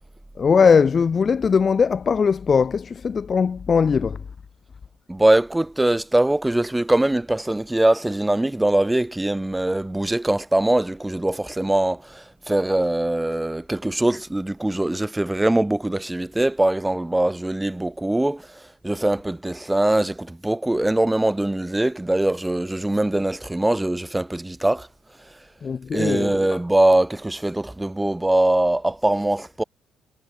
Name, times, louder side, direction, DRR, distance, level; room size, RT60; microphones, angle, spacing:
voice 1, 0.4-4.2 25.6-26.4, left 6 dB, 35° left, 2.9 m, -19 dB
voice 2, 5.1-24.9 25.9-29.6, right 1 dB, 10° right, 6.9 m, -22 dB
cardioid pair, 120°, 0 cm